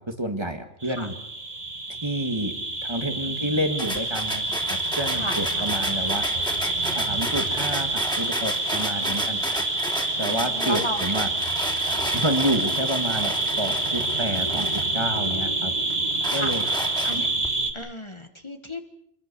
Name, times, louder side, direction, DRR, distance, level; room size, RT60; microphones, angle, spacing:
voice 1, 0.1-1.1 2.0-2.5 2.8-6.2 7.0-9.4 10.2-11.3 12.1-15.7 16.3-16.6, right 1 dB, 25° right, 6 dB, 2.0 m, -29 dB
sound 1, 0.8-17.7, right 2 dB, 45° right, 2.2 m, -27 dB
voice 2, 3.2-3.6 5.1-5.7 8.8-9.4 10.1-11.0 16.3-17.3 17.7-18.8, left 1 dB, 30° left, 7 dB, 1.6 m, -36 dB
sound 2, 3.8-15.5 15.9-17.5, equal, 5° left, 3.4 m, -33 dB
26.0 x 21.5 x 6.9 m, 0.73 s
omnidirectional pair, 1.0 m